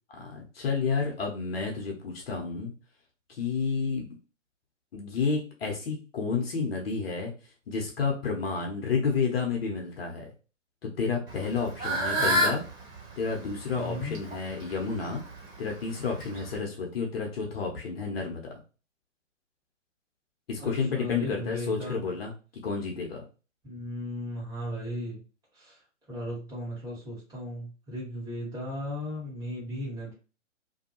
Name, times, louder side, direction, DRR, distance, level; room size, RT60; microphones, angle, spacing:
voice 1, 0.1-2.7 3.3-4.1 4.9-7.3 7.7-10.3 10.8-12.6 13.2-15.2 15.6-18.5 20.5-22.3 22.6-23.2, left 5 dB, 50° left, 1 dB, 0.8 m, -30 dB
Fowl / Bird, 11.3-16.6, equal, 45° right, 1.5 m, -31 dB
voice 2, 13.7-14.2 20.6-22.1 23.6-25.2 25.5-25.8 26.1-30.1, equal, 10° right, -7 dB, 1.4 m, -36 dB
2.6 x 2.2 x 2.8 m, 0.34 s
figure-of-eight pair, 130°, 38 cm